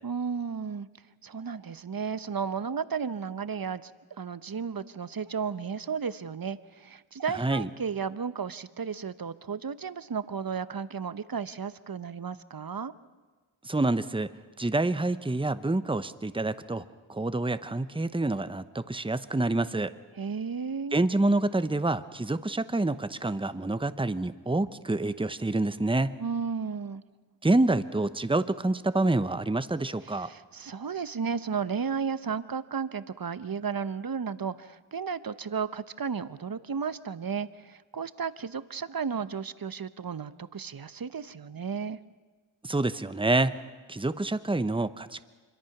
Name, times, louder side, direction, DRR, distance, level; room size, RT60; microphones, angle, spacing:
voice 1, 0.0-0.9 1.2-3.9 4.2-12.9 20.2-21.0 26.2-27.0 30.0-42.0, right 6 dB, 45° right, 14 dB, 0.9 m, -33 dB
voice 2, 7.3-7.7 13.6-14.3 14.6-19.9 20.9-26.2 27.4-30.3 42.6-43.6 43.9-45.2, right 2 dB, 10° right, 13 dB, 0.8 m, -27 dB
25.0 x 23.0 x 6.0 m, 1.4 s
cardioid pair, 40°, 49 cm